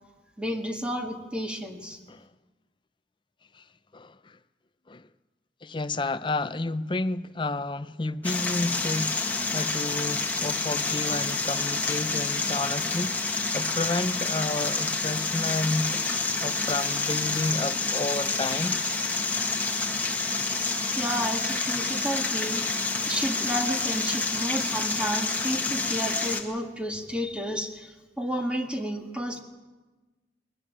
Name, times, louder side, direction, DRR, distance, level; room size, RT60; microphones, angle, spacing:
voice 1, 0.4-2.0 21.0-22.7 23.1-29.4, equal, 5° right, 1.9 m, -31 dB
voice 2, 3.9-4.4 4.9-5.1 5.6-16.0 16.4-18.8, left 2 dB, 25° left, 0.6 m, -31 dB
sound 1, 8.2-26.4, left 3 dB, 10° left, 1.8 m, -28 dB
21.5 x 14.0 x 9.9 m
head